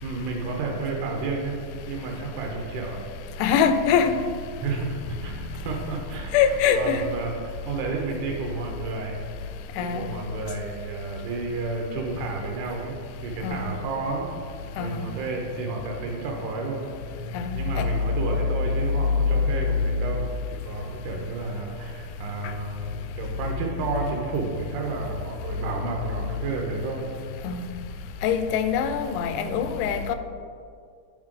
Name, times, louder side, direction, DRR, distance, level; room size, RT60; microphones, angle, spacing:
voice 1, 0.0-1.6 1.9-3.0 4.6-6.3 6.8-9.2 9.8-13.0 13.2-14.3 14.8-16.9 17.5-27.1, right 3 dB, 85° right, 0 dB, 2.2 m, -31 dB
voice 2, 3.4-4.1 6.3-7.0 9.8-10.1 13.4-13.7 14.8-15.0 17.3-17.9 27.4-27.7 28.2-30.2, left 7 dB, 85° left, 9 dB, 2.0 m, -23 dB
9.5 x 4.7 x 3.7 m, 2.3 s
omnidirectional pair, 3.5 m